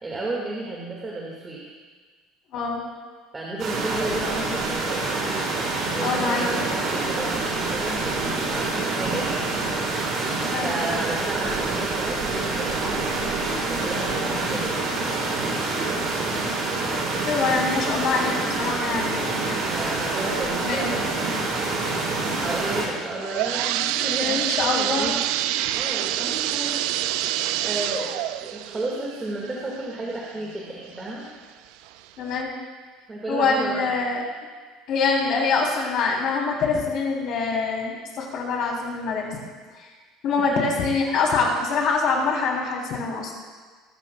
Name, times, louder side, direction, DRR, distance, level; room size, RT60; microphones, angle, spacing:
voice 1, 0.0-1.6 3.3-5.3 5.9-9.5 10.6-13.2 13.7-15.9 19.6-21.1 21.4-21.5 22.3-25.1 25.8-26.8 27.6-31.2 33.1-33.9 40.4-40.6, right 2 dB, 15° right, -4 dB, 1.9 m, -33 dB
voice 2, 2.5-2.8 6.0-6.6 10.5-10.8 17.2-19.9 20.5-21.0 24.0-25.2 32.2-32.5 33.3-34.2 34.9-39.4 39.7-39.9 40.2-43.4, left 4 dB, 45° left, -1 dB, 3.3 m, -25 dB
sound 1, 3.6-22.9, right 3 dB, 40° right, 4.3 m, -26 dB
sound 2, 22.9-30.5 31.0-31.1 31.9-32.0 32.4-32.5, right 13 dB, 70° right, 0.4 m, -27 dB
21.5 x 13.5 x 2.3 m, 1.4 s
cardioid pair, 170°, 0 cm